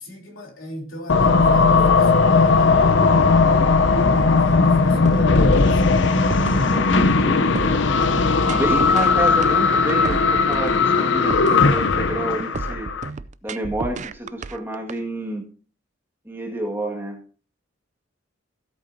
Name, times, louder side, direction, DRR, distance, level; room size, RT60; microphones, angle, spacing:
voice 1, 0.0-2.7 4.0-5.8, left 1 dB, 80° left, 0 dB, 3.5 m, -35 dB
sound 1, 1.1-13.1, left 4 dB, 60° left, 0.7 m, -17 dB
sound 2, 5.1-15.0, right 3 dB, 35° right, 0.4 m, -32 dB
voice 2, 6.5-7.0 7.2-7.5 8.4-12.9 13.4-15.4 16.3-17.2, right 1 dB, 10° right, 1 dB, 1.8 m, -29 dB
16.5 x 8.3 x 2.7 m, 0.39 s
head